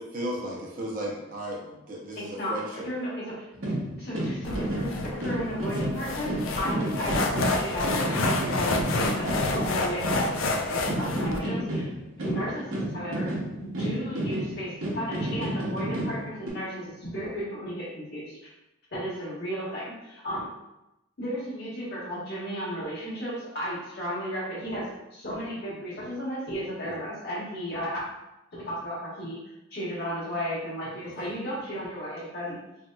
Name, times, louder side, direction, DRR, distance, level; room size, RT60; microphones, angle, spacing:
voice 1, 0.0-2.9 26.8-27.0 31.2-31.3, right 1 dB, 40° right, -3 dB, 0.6 m, -35 dB
voice 2, 2.1-2.6 2.8-3.5 4.0-11.9 12.2-13.3 13.6-18.5 18.9-20.5 21.2-24.8 25.1-28.0 28.5-32.6, equal, 50° left, -6 dB, 1.0 m, -34 dB
sound 1, 3.5-10.6 10.9-16.5, right 1 dB, 75° right, 0.8 m, -31 dB
sound 2, 4.4-11.4, left 2 dB, 70° left, 0.3 m, -29 dB
2.8 x 2.7 x 2.2 m, 0.94 s
head